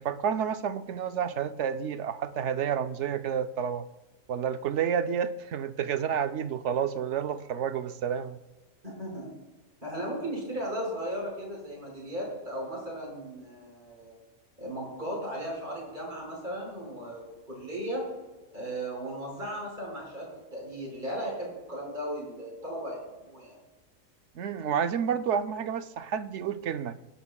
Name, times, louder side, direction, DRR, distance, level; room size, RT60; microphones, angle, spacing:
voice 1, 0.0-3.9 4.3-8.4 24.4-27.0, right 8 dB, 65° right, 10 dB, 0.9 m, -30 dB
voice 2, 8.8-9.3 9.8-14.2 14.6-18.0 18.5-23.6, right 1 dB, 35° right, -3 dB, 5.4 m, -36 dB
24.0 x 10.0 x 2.3 m, 1.1 s
omnidirectional pair, 1.4 m